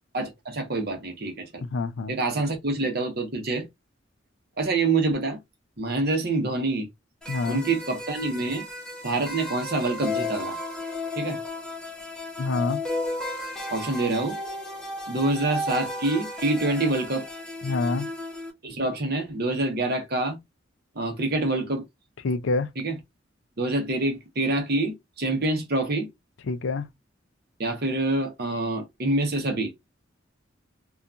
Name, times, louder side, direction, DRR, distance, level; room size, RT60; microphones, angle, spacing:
voice 1, 0.1-1.6 2.1-3.7 4.6-5.4 5.8-6.9 7.5-8.7 9.0-10.6 11.2-11.4 13.7-14.4 15.1-17.2 18.6-20.4 20.9-21.8 22.8-22.9 23.6-26.1 27.6-29.7, right 2 dB, 55° right, 0.9 m, -26 dB
voice 2, 1.6-2.1 7.3-7.6 12.4-12.8 17.6-18.1 22.2-22.7 26.5-26.9, left 3 dB, 70° left, 0.4 m, -26 dB
sound 1, 7.2-18.5, left 2 dB, 5° left, 0.7 m, -34 dB
2.8 x 2.3 x 2.3 m
head